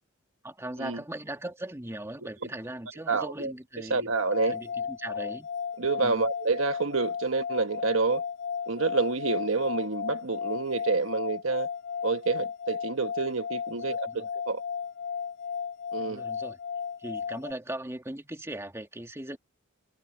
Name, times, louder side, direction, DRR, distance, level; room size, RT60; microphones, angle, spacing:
voice 1, 0.4-4.1 4.5-5.5 6.0-6.3 13.7-14.3 16.0-16.6 17.0-19.4, right 1 dB, 15° right, 2.0 m, -39 dB
voice 2, 3.1-3.5 3.9-4.6 5.8-8.2 8.7-11.7 12.0-14.6 15.9-16.2, right 4 dB, 90° right, 1.3 m, -28 dB
sound 1, 4.1-17.5, left 6 dB, 55° left, 2.9 m, -34 dB
head